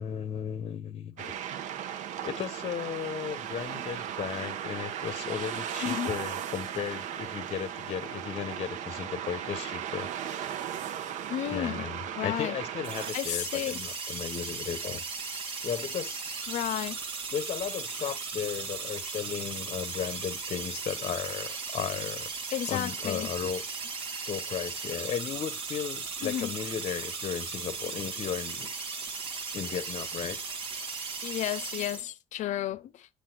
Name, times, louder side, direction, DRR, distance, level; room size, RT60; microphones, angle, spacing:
voice 1, 0.0-1.3 2.2-10.1 11.5-15.0 15.6-16.3 17.3-22.3 22.7-23.6 24.3-28.7 29.5-30.4, left 8 dB, 50° left, 1.1 m, -35 dB
sound 1, 1.2-13.1, right 9 dB, 75° right, 1.1 m, -36 dB
voice 2, 11.3-11.8 12.1-12.6 13.1-13.8 16.5-17.0 22.5-23.3 26.2-26.5 31.2-33.1, left 12 dB, 75° left, 0.7 m, -32 dB
sound 2, 12.8-32.0, right 4 dB, 45° right, 2.7 m, -37 dB
10.0 x 6.8 x 2.3 m
cardioid pair, 130°, 13 cm